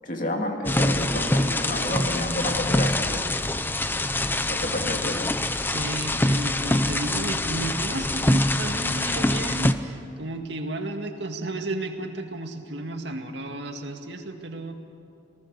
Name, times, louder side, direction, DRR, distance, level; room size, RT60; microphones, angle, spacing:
voice 1, 0.0-3.2 4.5-5.3, left 1 dB, 45° left, 2 dB, 2.5 m, -30 dB
sound 1, 0.6-9.7, left 1 dB, 10° left, 0.6 m, -25 dB
voice 2, 5.7-14.7, right 2 dB, 70° right, 4 dB, 2.0 m, -33 dB
28.5 x 18.5 x 6.8 m, 2.6 s
head